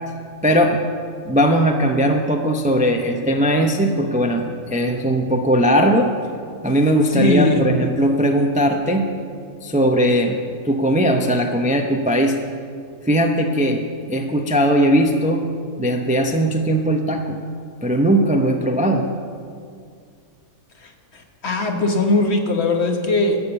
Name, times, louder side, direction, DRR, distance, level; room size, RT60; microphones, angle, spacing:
voice 1, 0.4-0.8 1.2-6.1 6.6-9.1 9.6-10.4 10.6-12.4 13.0-13.8 14.1-15.4 15.8-17.4 17.8-19.1, equal, 10° right, 3 dB, 0.3 m, -18 dB
voice 2, 7.1-7.6 20.8-23.4, left 2 dB, 50° left, 3 dB, 1.3 m, -20 dB
12.5 x 7.1 x 6.9 m, 2.2 s
omnidirectional pair, 1.5 m